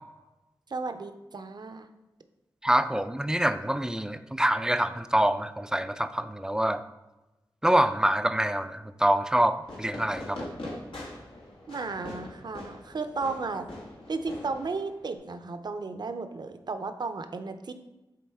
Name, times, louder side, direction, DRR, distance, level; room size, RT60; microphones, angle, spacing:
voice 1, 0.7-1.9 11.7-13.7 14.1-17.7, right 4 dB, 60° right, 9 dB, 0.6 m, -34 dB
voice 2, 2.6-6.8 7.6-10.5, right 1 dB, 10° right, 11 dB, 0.4 m, -25 dB
Fireworks, 9.6-15.2, left 1 dB, 90° left, 1.5 m, -42 dB
7.5 x 3.9 x 3.5 m, 1.0 s
cardioid pair, 55°, 8 cm